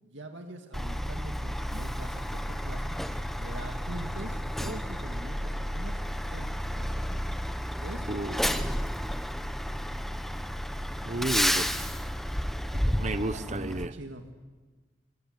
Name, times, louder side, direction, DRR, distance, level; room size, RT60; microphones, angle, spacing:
voice 1, 0.0-6.0 6.3-7.3 7.8-8.1 8.4-9.0 12.7-14.3, right 1 dB, 85° right, 4 dB, 2.2 m, -44 dB
Truck, 0.7-13.9, equal, ahead, 1.0 m, -32 dB
sound 1, 1.3-6.3, equal, 70° left, 7.4 m, -49 dB
voice 2, 8.1-8.8 11.0-11.8 13.0-13.9, right 2 dB, 40° right, 13 dB, 1.1 m, -33 dB
28.0 x 23.5 x 8.1 m, 1.3 s
head